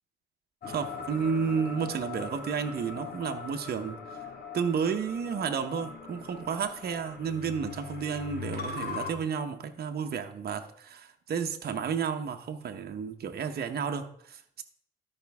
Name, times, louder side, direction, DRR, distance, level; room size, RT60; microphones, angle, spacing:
sound 1, 0.6-9.1, left 5 dB, 50° left, 2.0 m, -41 dB
voice 1, 0.7-4.3 4.5-14.6, right 6 dB, 50° right, 6 dB, 1.0 m, -32 dB
13.0 x 5.3 x 3.5 m, 0.64 s
cardioid pair, 90°, 20 cm